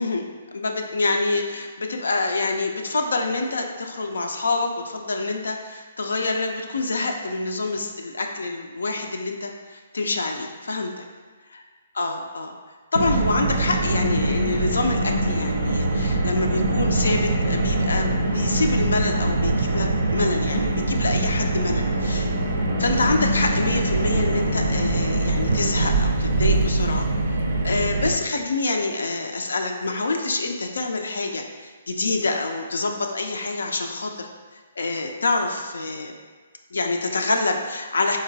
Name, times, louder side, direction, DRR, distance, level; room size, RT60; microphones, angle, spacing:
voice 1, 0.0-11.1 12.0-12.6 12.9-22.3 22.8-27.1 27.6-34.3 34.8-36.1 36.7-38.2, left 3 dB, 85° left, 3 dB, 0.3 m, -26 dB
Car, 12.9-28.1, right 2 dB, 75° right, 0.4 m, -23 dB
3.8 x 2.1 x 2.6 m, 1.4 s
hypercardioid pair, 150°, 0 cm